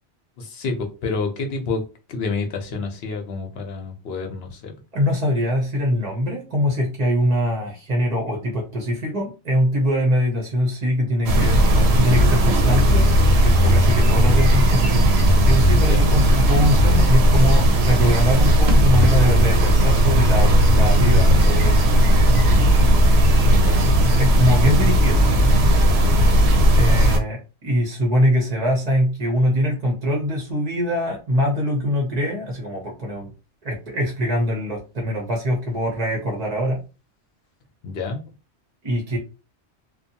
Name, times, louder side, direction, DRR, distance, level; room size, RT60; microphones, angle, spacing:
voice 1, 0.4-1.8 2.1-4.7 15.8-16.1 23.4-24.0 37.8-38.2, left 4 dB, 70° left, 0.9 m, -28 dB
voice 2, 4.9-15.0 15.4-22.0 24.1-25.2 26.7-33.3 33.6-36.8 38.8-39.2, equal, 40° right, 0.7 m, -23 dB
sound 1, 11.3-27.2, equal, 75° right, 0.8 m, -16 dB
2.6 x 2.2 x 2.7 m
omnidirectional pair, 1.1 m